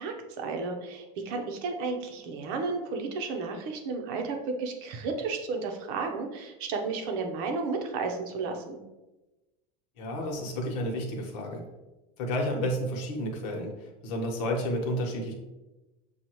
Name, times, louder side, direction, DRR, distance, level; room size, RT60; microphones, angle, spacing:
voice 1, 0.0-8.8, right 4 dB, 55° right, 4 dB, 0.8 m, -33 dB
voice 2, 10.0-11.6 12.2-15.3, equal, 60° left, 1 dB, 1.2 m, -31 dB
7.0 x 2.4 x 3.0 m, 1.1 s
cardioid pair, 165°, 21 cm